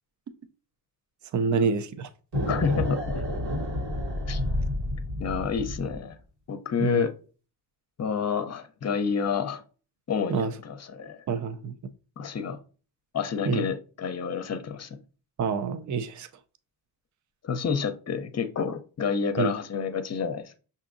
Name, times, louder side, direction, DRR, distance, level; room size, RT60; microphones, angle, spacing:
voice 1, 1.3-2.1 6.8-7.0 10.3-10.5 11.3-11.7 13.5-13.7 15.4-16.3 19.4-19.5, right 5 dB, 40° right, 0.5 m, -27 dB
sound 1, 2.3-6.0, left 1 dB, 70° right, 1.6 m, -29 dB
voice 2, 2.5-3.3 4.3-4.4 5.2-6.1 6.5-7.1 8.0-9.6 10.1-11.2 12.2-12.6 13.1-15.0 17.4-20.5, left 6 dB, 35° left, 0.7 m, -29 dB
5.8 x 2.8 x 2.5 m
cardioid pair, 60°, 44 cm